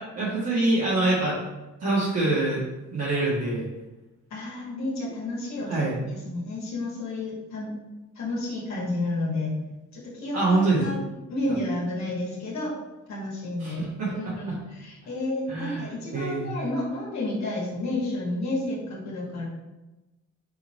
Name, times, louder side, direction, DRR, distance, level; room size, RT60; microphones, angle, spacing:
voice 1, 0.0-1.4 1.8-2.6 2.9-3.7 5.7-6.0 10.3-10.8 13.6-14.1 15.5-16.5, right 2 dB, 55° right, -9 dB, 1.8 m, -25 dB
voice 2, 4.3-7.7 8.2-9.6 9.9-11.0 11.3-12.8 13.1-13.8 14.1-19.5, left 2 dB, 65° left, -4 dB, 1.9 m, -31 dB
5.7 x 4.0 x 4.4 m, 1.0 s
wide cardioid pair, 160°, 30 cm